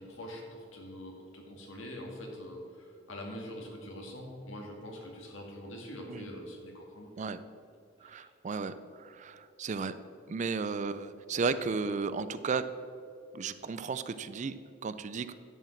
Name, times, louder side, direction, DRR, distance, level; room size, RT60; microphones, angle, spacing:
voice 1, 0.0-7.2 8.0-8.3, equal, 85° left, 0 dB, 2.0 m, -44 dB
voice 2, 8.0-10.0 10.3-12.7 13.3-15.3, right 4 dB, 40° right, 13 dB, 0.4 m, -34 dB
10.5 x 4.9 x 7.2 m, 2.3 s
head